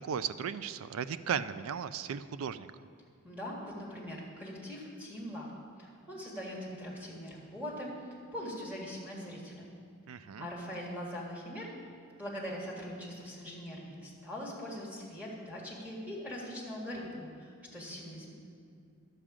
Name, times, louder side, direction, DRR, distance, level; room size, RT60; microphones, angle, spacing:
voice 1, 0.0-2.7 10.1-10.5, right 7 dB, 75° right, 14 dB, 0.4 m, -36 dB
voice 2, 3.2-5.5 5.8-9.7 10.1-11.7 12.2-18.3, equal, 5° right, -4 dB, 1.8 m, -42 dB
11.5 x 7.5 x 5.0 m, 2.2 s
head